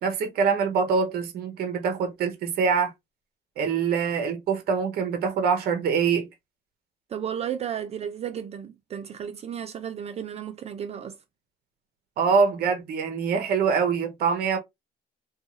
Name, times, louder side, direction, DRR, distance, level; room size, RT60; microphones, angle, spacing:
voice 1, 0.0-2.9 3.6-6.3 12.2-14.6, right 5 dB, 65° right, 0.9 m, -24 dB
voice 2, 7.1-11.2, right 8 dB, 40° right, 0.4 m, -33 dB
2.6 x 2.3 x 2.9 m
cardioid pair, 110°, 17 cm